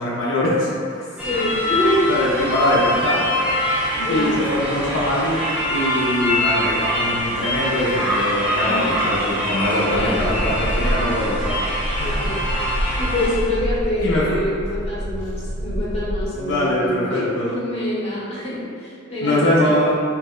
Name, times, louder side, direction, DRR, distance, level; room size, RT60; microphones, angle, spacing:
voice 1, 0.0-1.1 2.1-3.3 4.1-11.6 12.0-12.3 14.0-14.4 16.3-17.5 19.2-19.9, left 1 dB, 75° left, -6 dB, 0.5 m, -22 dB
voice 2, 1.2-2.1 3.9-4.5 8.5-9.0 9.9-10.3 12.0-19.8, left 1 dB, 30° left, -8 dB, 0.8 m, -26 dB
sound 1, 1.2-13.4, left 1 dB, 5° right, 0.6 m, -24 dB
sound 2, 9.9-16.4, equal, 65° right, 0.4 m, -27 dB
2.9 x 2.1 x 3.5 m, 2.3 s
head